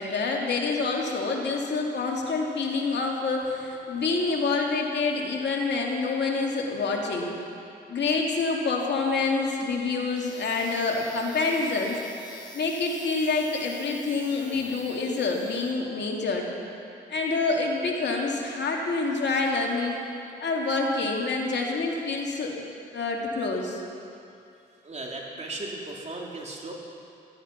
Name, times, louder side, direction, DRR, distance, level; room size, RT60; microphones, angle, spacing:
voice 1, 0.0-7.3 7.9-12.0 12.5-16.5 17.1-20.0 20.4-22.6 22.9-23.8, left 3 dB, 60° left, 0 dB, 2.6 m, -27 dB
sound 1, 9.7-15.7, left 2 dB, 20° left, 4.3 m, -47 dB
voice 2, 24.8-26.7, right 2 dB, 35° right, -1 dB, 3.3 m, -36 dB
16.5 x 13.5 x 5.9 m, 2.6 s
supercardioid pair, 60°, 20 cm